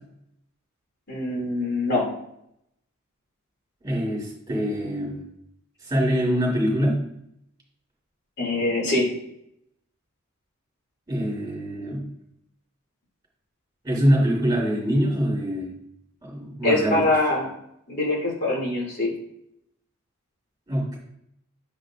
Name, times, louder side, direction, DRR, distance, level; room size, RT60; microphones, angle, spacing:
voice 1, 1.1-2.1 8.4-9.1 16.6-17.5 17.9-19.1, left 2 dB, 55° left, -2 dB, 2.6 m, -23 dB
voice 2, 3.8-5.2 5.8-7.0 11.1-12.1 13.8-15.7 16.2-17.1 20.7-21.0, equal, 20° right, -3 dB, 3.1 m, -24 dB
9.4 x 6.7 x 2.6 m, 0.75 s
head